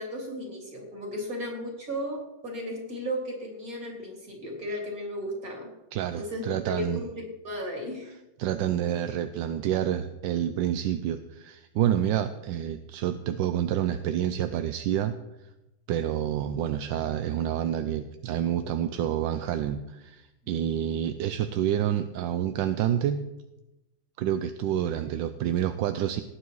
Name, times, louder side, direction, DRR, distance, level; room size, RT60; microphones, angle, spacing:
voice 1, 0.0-5.7 6.1-8.1, equal, 40° right, 0 dB, 4.0 m, -35 dB
voice 2, 5.9-7.1 8.4-15.2 15.9-23.2 24.2-26.2, right 10 dB, 70° right, 10 dB, 1.2 m, -28 dB
18.0 x 9.4 x 4.7 m, 0.99 s
omnidirectional pair, 2.3 m